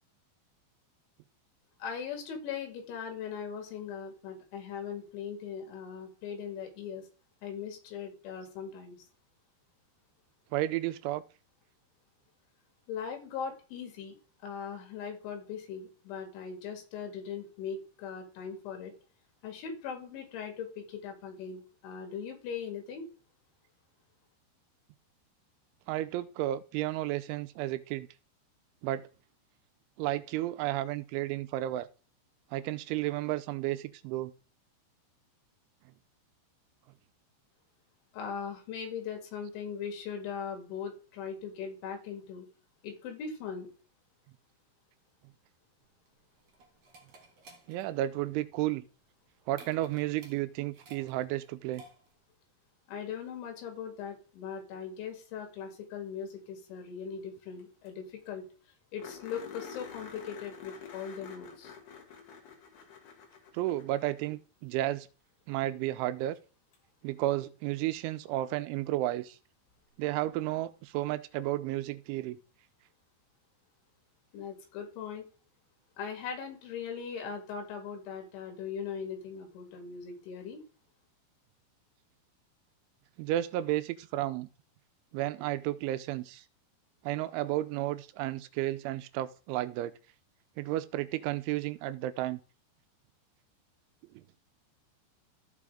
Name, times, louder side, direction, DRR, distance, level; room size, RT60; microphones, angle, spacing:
voice 1, 1.8-7.1 7.4-9.1 12.9-14.2 14.4-18.9 19.4-23.1 38.1-42.5 42.8-43.7 52.9-58.4 58.9-61.8 74.3-75.2 76.0-80.6, left 7 dB, 80° left, 4.4 m, -40 dB
voice 2, 10.5-11.2 25.9-28.1 28.8-29.1 30.0-31.9 32.5-34.3 47.7-48.8 49.5-51.8 63.5-65.1 65.5-66.4 67.0-69.4 70.0-72.4 83.2-84.5 85.1-86.4 87.0-89.9 90.6-92.4 94.1-94.2, right 15 dB, 90° right, 3.0 m, -32 dB
sound 1, 45.8-52.3, right 2 dB, 50° right, 2.1 m, -57 dB
sound 2, 57.6-57.7 57.9-58.0 58.3-58.4 59.0-64.4 66.7-66.8 69.7-69.8, left 6 dB, 60° left, 3.6 m, -48 dB
14.5 x 5.0 x 3.6 m
omnidirectional pair, 5.4 m